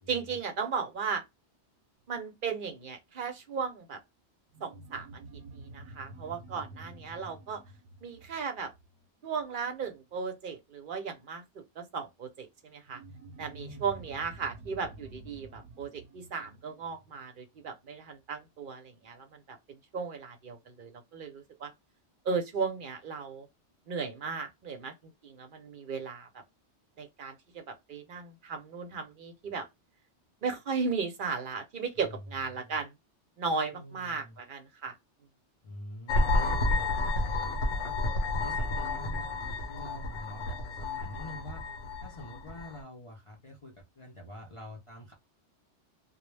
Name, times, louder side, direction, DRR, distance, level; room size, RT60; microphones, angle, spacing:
voice 1, 0.1-1.2 2.1-4.0 4.6-5.1 5.5-7.6 8.0-8.7 9.2-13.0 13.4-21.7 22.2-23.5 23.9-26.3 27.0-29.7 30.4-32.9 33.4-34.9, right 5 dB, 55° right, 0.7 m, -36 dB
sound 1, 4.5-9.5 12.9-17.8, right 2 dB, 85° right, 0.9 m, -50 dB
voice 2, 13.6-13.9 32.0-32.2 32.5-32.8 33.7-34.4 35.6-41.7 42.0-45.1, left 1 dB, 45° left, 0.4 m, -47 dB
sound 2, 36.1-42.8, left 2 dB, 90° left, 0.9 m, -30 dB
2.1 x 2.0 x 3.1 m
omnidirectional pair, 1.2 m